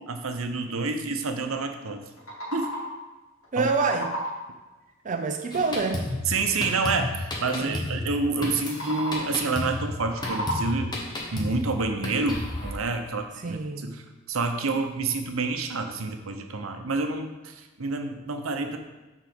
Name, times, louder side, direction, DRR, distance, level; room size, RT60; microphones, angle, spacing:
voice 1, 0.1-2.0 2.5-2.8 3.6-3.7 6.3-10.9 11.3-14.0 14.3-18.8, right 3 dB, 85° right, 6 dB, 0.8 m, -28 dB
sound 1, 2.0-3.1 3.4-4.6 8.6-9.4 9.9-11.0, equal, 80° left, 2.1 m, -34 dB
voice 2, 3.5-4.1 5.0-6.0 7.6-7.8 13.4-14.0, right 4 dB, 40° right, 4 dB, 0.5 m, -27 dB
Drum kit, 5.5-12.7, left 1 dB, 20° left, 1.2 m, -33 dB
7.0 x 4.0 x 6.0 m, 1.2 s
head